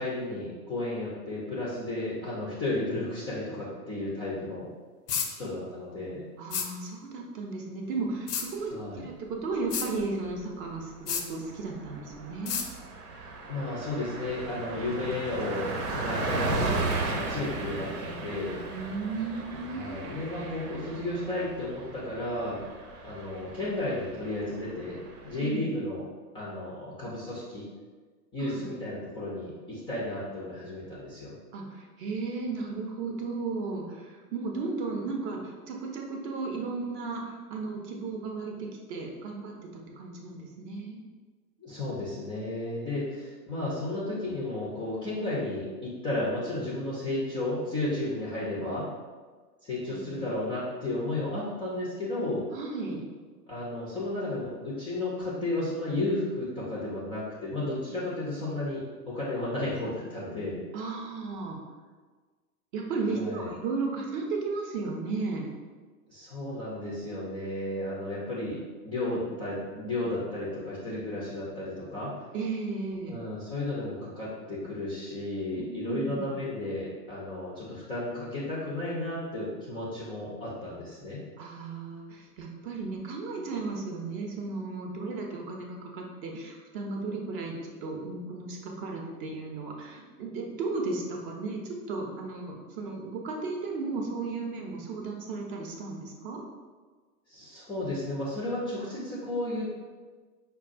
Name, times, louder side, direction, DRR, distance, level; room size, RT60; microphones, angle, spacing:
voice 1, 0.0-4.7 5.4-6.2 8.7-9.1 13.5-18.6 19.7-22.6 23.0-26.0 26.3-27.7 28.3-31.3 41.6-48.9 49.6-52.5 53.5-60.6 63.1-63.5 66.1-72.1 73.1-81.2 97.3-99.7, left 2 dB, 10° left, -7 dB, 0.3 m, -33 dB
sound 1, 5.1-5.3 6.5-6.7 8.3-8.5 9.7-9.9 11.1-11.3 12.5-12.7, left 7 dB, 85° left, 0.6 m, -30 dB
voice 2, 6.4-12.6 18.7-20.1 25.4-25.7 28.4-28.7 31.5-41.0 49.9-50.3 52.5-53.0 60.7-61.6 62.7-65.5 72.3-73.2 75.6-76.4 81.4-96.4, right 3 dB, 35° right, 1 dB, 0.6 m, -35 dB
Car passing by, 9.8-10.4 10.7-10.9 11.2-25.4, right 2 dB, 75° right, 0.8 m, -36 dB
5.1 x 2.3 x 2.5 m, 1.4 s
hypercardioid pair, 110°, 46 cm